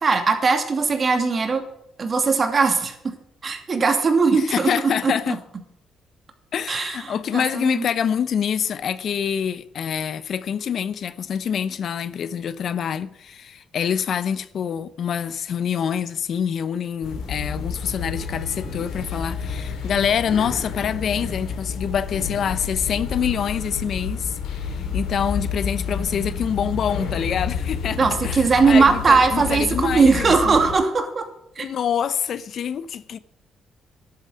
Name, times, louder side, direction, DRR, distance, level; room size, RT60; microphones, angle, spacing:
voice 1, 0.0-1.6 2.0-3.0 3.4-5.1 6.7-7.9 28.0-31.3 31.6-31.7, right 4 dB, 40° right, 2.7 m, -19 dB
voice 2, 4.3-5.4 6.5-30.6 31.6-33.2, left 8 dB, 60° left, 0.8 m, -26 dB
sound 1, 17.0-30.7, left 5 dB, 85° left, 3.7 m, -30 dB
11.5 x 8.7 x 9.8 m
cardioid pair, 90°, 0 cm